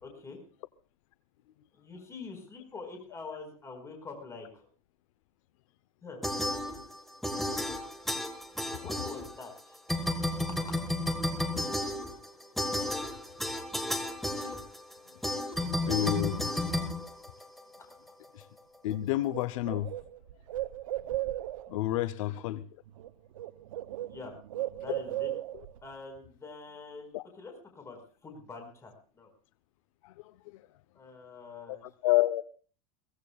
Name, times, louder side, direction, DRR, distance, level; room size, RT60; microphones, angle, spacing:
voice 1, 0.0-0.4 1.7-4.7 6.0-6.2 8.7-9.8 10.4-10.6 17.8-17.9 24.1-24.3 24.8-25.3 25.8-29.3 30.9-31.8, left 4 dB, 15° left, 4 dB, 4.9 m, -45 dB
sound 1, 6.2-7.0 7.2-9.6 9.9-17.8, left 1 dB, ahead, 1.6 m, -32 dB
voice 2, 15.9-16.5 18.3-18.4 18.8-19.9 21.7-22.6 27.1-27.2 30.0-30.1 30.5-30.6 31.7-31.8 32.0-32.4, left 15 dB, 75° left, 14 dB, 0.8 m, -29 dB
Bird, 18.9-19.0 19.3-21.8 22.9-23.1 23.3-25.8, right 15 dB, 90° right, 0.7 m, -36 dB
23.0 x 17.0 x 2.4 m, 0.40 s
supercardioid pair, 145°, 17 cm